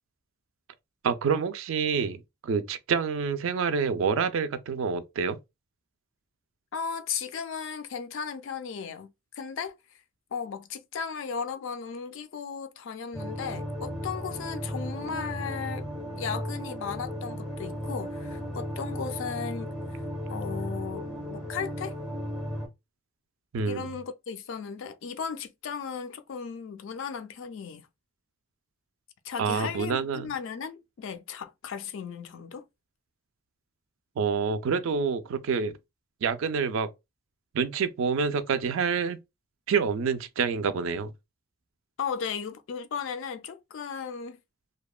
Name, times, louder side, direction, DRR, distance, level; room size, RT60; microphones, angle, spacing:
voice 1, 1.0-5.4 23.5-23.9 29.4-30.3 34.2-35.8 36.2-36.9 37.5-39.2 39.7-41.1, right 5 dB, 60° right, 0.3 m, -27 dB
voice 2, 6.7-9.8 10.3-15.9 16.2-19.7 20.3-22.0 23.7-27.9 29.2-32.6 42.0-44.4, left 6 dB, 60° left, 0.3 m, -36 dB
sound 1, 13.1-22.7, equal, 5° left, 0.5 m, -35 dB
2.8 x 2.2 x 2.3 m
head